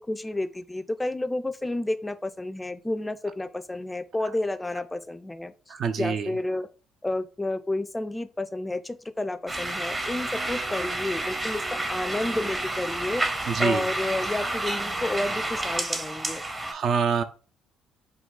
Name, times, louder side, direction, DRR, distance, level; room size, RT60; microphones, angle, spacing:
voice 1, 0.0-5.5 6.0-6.7 7.0-13.2 13.6-16.4, left 2 dB, 15° left, 0.3 m, -30 dB
voice 2, 5.7-6.3 13.5-13.8 16.7-17.2, right 6 dB, 55° right, 0.4 m, -25 dB
sound 1, 9.5-16.7, right 2 dB, 25° right, 0.7 m, -30 dB
3.8 x 2.3 x 3.6 m
hypercardioid pair, 50°, 0 cm